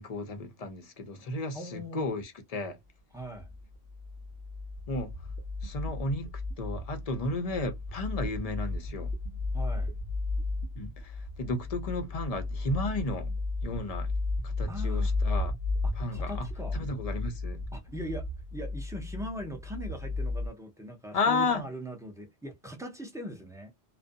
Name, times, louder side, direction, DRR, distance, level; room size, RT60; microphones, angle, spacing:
voice 1, 0.0-2.8 4.9-5.1 5.6-6.3 6.6-9.1 10.8-13.3 13.6-14.1 14.4-15.5 16.0-16.5 16.7-17.6 21.1-21.6, left 3 dB, 45° left, 0.5 m, -33 dB
voice 2, 1.5-2.1 3.1-3.5 9.5-10.0 14.7-15.1 15.8-16.8 17.7-23.9, equal, 5° right, 0.5 m, -41 dB
sound 1, 3.4-20.5, left 2 dB, 70° right, 0.9 m, -34 dB
2.5 x 2.1 x 2.5 m
omnidirectional pair, 1.1 m